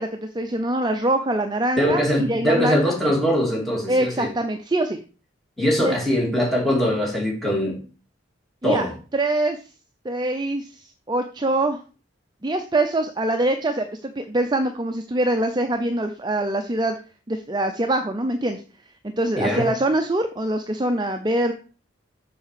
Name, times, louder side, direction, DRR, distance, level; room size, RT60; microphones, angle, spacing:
voice 1, 0.0-2.8 3.9-5.0 5.8-6.0 8.6-8.9 9.1-9.6 10.0-11.8 12.4-17.0 17.3-18.6 19.0-21.5, right 1 dB, 20° right, 6 dB, 0.5 m, -24 dB
voice 2, 1.8-4.3 5.6-7.8 8.6-8.9 19.3-19.7, equal, ahead, -3 dB, 2.9 m, -22 dB
6.9 x 4.8 x 6.8 m, 0.36 s
head